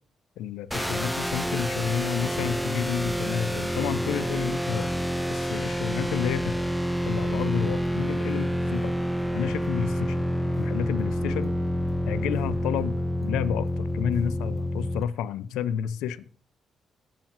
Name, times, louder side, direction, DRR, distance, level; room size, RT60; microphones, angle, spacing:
voice 1, 0.4-5.0 5.3-6.5 7.1-8.9 9.3-10.3 10.6-11.6 12.1-16.3, left 9 dB, 80° left, 15 dB, 0.7 m, -30 dB
sound 1, 0.7-15.0, equal, ahead, 0.7 m, -28 dB
21.5 x 7.2 x 3.0 m, 0.43 s
hypercardioid pair, 45°, 0 cm